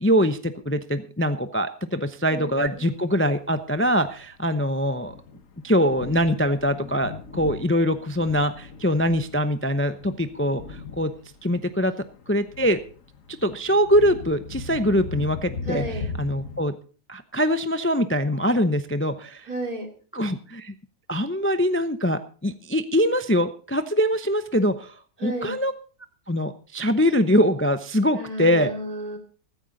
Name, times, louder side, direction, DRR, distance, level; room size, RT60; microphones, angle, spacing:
voice 1, 0.0-5.1 5.6-11.1 11.4-11.9 12.3-12.8 13.4-15.8 16.2-16.8 17.1-19.5 20.1-20.7 21.1-24.9 25.2-25.7 26.3-28.7, equal, 15° left, 10 dB, 0.5 m, -23 dB
voice 2, 2.3-2.9 15.7-16.1 19.5-19.9 25.2-25.6 28.1-29.2, right 1 dB, 75° right, 3 dB, 3.5 m, -32 dB
Thunder, 2.9-16.6, left 4 dB, 60° left, 1.8 m, -39 dB
15.0 x 14.0 x 4.0 m, 0.38 s
omnidirectional pair, 1.6 m